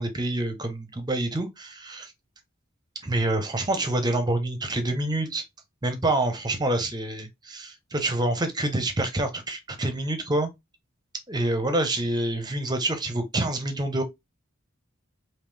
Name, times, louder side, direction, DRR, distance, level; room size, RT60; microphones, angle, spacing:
voice 1, 0.0-2.1 3.0-5.4 5.8-10.5 11.3-14.0, right 2 dB, 20° right, 0.8 m, -27 dB
3.6 x 2.8 x 3.2 m
head